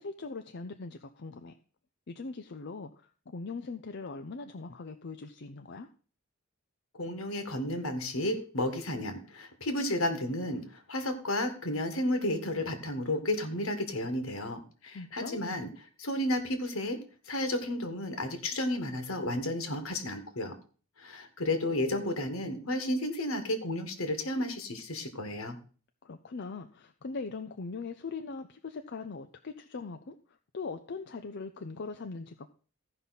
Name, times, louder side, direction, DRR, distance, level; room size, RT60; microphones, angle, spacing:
voice 1, 0.0-1.6 2.1-5.9 14.9-15.6 26.0-30.2 30.5-32.5, left 4 dB, 55° left, 6 dB, 0.6 m, -41 dB
voice 2, 7.0-15.7 16.0-17.0 17.3-20.5 21.0-25.6, left 1 dB, 75° left, 7 dB, 1.7 m, -32 dB
15.5 x 5.5 x 4.1 m, 0.40 s
head